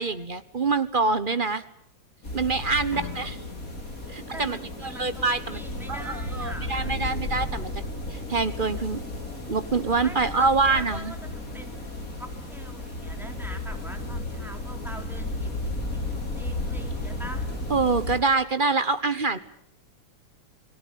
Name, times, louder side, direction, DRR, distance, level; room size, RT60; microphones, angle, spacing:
voice 1, 0.0-1.6 2.3-3.4 4.1-4.6 4.8-5.6 5.9-7.7 8.1-9.0 9.5-11.1 17.7-19.4, right 4 dB, 30° right, 13 dB, 1.0 m, -25 dB
sound 1, 2.2-18.2, left 2 dB, 45° left, 5.7 m, -34 dB
voice 2, 2.7-3.1 4.3-6.9 10.0-17.4, equal, ahead, 5 dB, 3.4 m, -43 dB
sound 2, 2.9-5.8, left 6 dB, 80° left, 4.0 m, -45 dB
29.0 x 18.5 x 9.4 m, 0.67 s
omnidirectional pair, 2.1 m